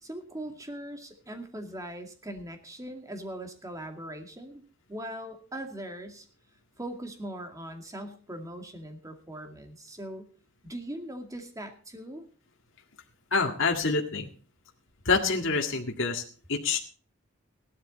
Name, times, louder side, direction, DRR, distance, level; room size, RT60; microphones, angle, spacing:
voice 1, 0.0-4.6 4.9-6.3 6.8-10.3 10.6-12.2, right 1 dB, 15° right, 5 dB, 2.2 m, -40 dB
voice 2, 13.3-14.3 15.1-16.2 16.5-16.8, left 4 dB, 65° left, 2 dB, 2.0 m, -26 dB
16.5 x 12.5 x 4.1 m, 0.40 s
head